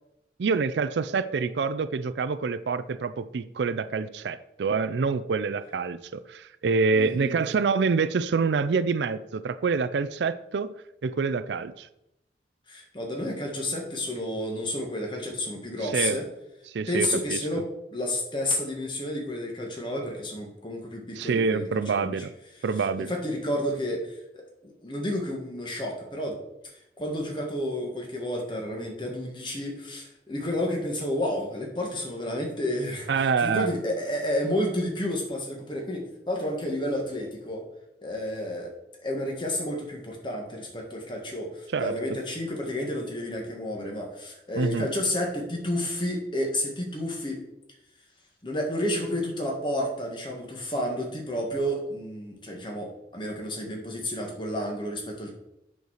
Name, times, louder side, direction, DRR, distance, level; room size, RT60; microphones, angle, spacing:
voice 1, 0.4-10.7 11.0-11.9 15.8-16.2 16.7-17.4 21.2-22.3 22.6-23.1 33.1-33.7 41.7-41.9 44.6-44.9, right 5 dB, 80° right, 14 dB, 0.4 m, -26 dB
voice 2, 6.9-7.4 12.7-16.2 16.9-17.6 17.9-21.7 21.9-22.2 22.8-26.4 26.6-33.1 33.4-37.7 38.0-38.7 39.0-47.4 48.4-55.3, left 1 dB, 25° left, 1 dB, 1.7 m, -31 dB
8.1 x 4.6 x 6.4 m, 0.86 s
head